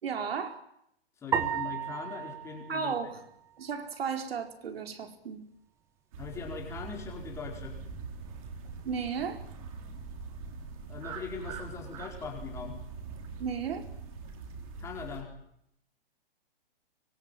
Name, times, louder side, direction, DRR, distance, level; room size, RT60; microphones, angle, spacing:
voice 1, 0.0-0.6 2.7-3.2 3.6-5.4 8.8-9.4 13.4-13.8, right 6 dB, 70° right, 5 dB, 4.7 m, -34 dB
voice 2, 1.2-2.9 6.2-7.8 10.9-12.8 14.8-15.3, left 5 dB, 10° left, 1 dB, 4.8 m, -40 dB
sound 1, 1.3-3.8, right 8 dB, 10° right, 1.1 m, -34 dB
sound 2, 6.1-15.2, right 5 dB, 35° right, 4.7 m, -43 dB
25.0 x 23.0 x 9.2 m, 0.75 s
hypercardioid pair, 170°, 31 cm